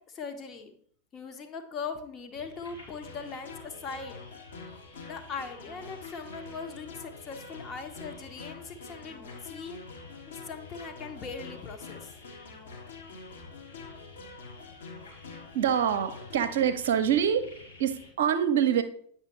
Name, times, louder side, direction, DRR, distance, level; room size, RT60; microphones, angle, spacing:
voice 1, 0.1-0.8 1.1-4.2 5.1-9.8 10.3-12.1, left 5 dB, 30° left, 6 dB, 0.9 m, -40 dB
sound 1, 2.3-18.1, left 3 dB, 85° left, 3.1 m, -52 dB
sound 2, 3.0-16.7, left 4 dB, 65° left, 1.7 m, -47 dB
voice 2, 15.5-17.5 17.8-18.8, right 9 dB, 55° right, 10 dB, 0.7 m, -25 dB
8.9 x 5.6 x 3.0 m, 0.63 s
figure-of-eight pair, 90°, 0 cm